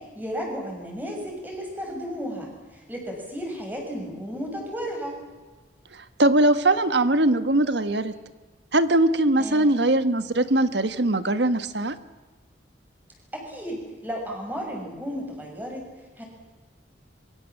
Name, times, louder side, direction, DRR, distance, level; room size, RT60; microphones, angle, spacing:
voice 1, 0.0-5.2 8.1-8.3 9.4-9.7 13.3-15.9 16.2-16.3, equal, 10° right, 1 dB, 6.8 m, -34 dB
voice 2, 5.9-8.1 8.7-12.0, right 1 dB, 70° right, 11 dB, 1.4 m, -21 dB
26.5 x 23.5 x 7.4 m, 1.2 s
head